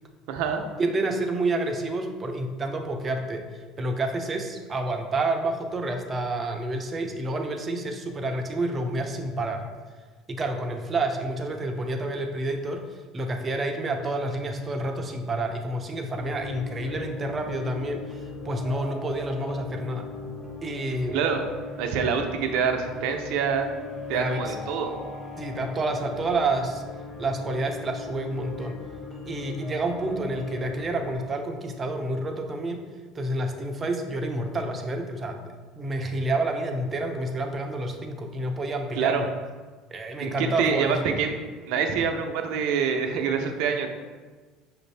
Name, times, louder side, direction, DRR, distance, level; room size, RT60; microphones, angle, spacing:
voice 1, 0.3-0.6 21.1-21.4 21.8-23.7 24.1-24.9 39.0-39.2 40.2-41.3 41.6-43.9, right 6 dB, 75° right, 5 dB, 0.5 m, -26 dB
voice 2, 0.8-9.6 10.3-12.8 13.1-20.1 20.6-21.2 24.1-24.6 25.4-26.8 27.2-28.8 29.2-32.8 33.1-39.3 39.9-41.0, right 2 dB, 30° right, 4 dB, 0.6 m, -29 dB
sound 1, 16.1-31.2, left 3 dB, 30° left, 1.3 m, -39 dB
5.8 x 2.6 x 3.3 m, 1.4 s
supercardioid pair, 105°, 0 cm